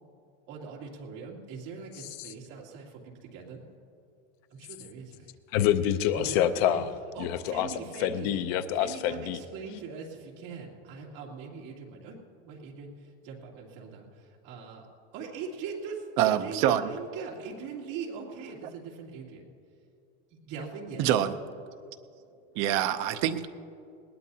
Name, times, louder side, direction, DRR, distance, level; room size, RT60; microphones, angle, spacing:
voice 1, 0.5-3.6 4.5-5.3 6.1-6.8 7.1-8.3 8.8-12.2 12.4-14.9 15.1-19.4 20.4-21.1, right 5 dB, 55° right, -2 dB, 2.8 m, -41 dB
voice 2, 5.5-6.9 7.2-7.7 8.0-9.4, left 10 dB, 50° left, 10 dB, 0.6 m, -26 dB
voice 3, 16.2-16.9 21.0-21.3 22.6-23.5, right 11 dB, 40° right, 9 dB, 0.6 m, -25 dB
20.5 x 18.5 x 2.8 m, 2.6 s
cardioid pair, 175°, 32 cm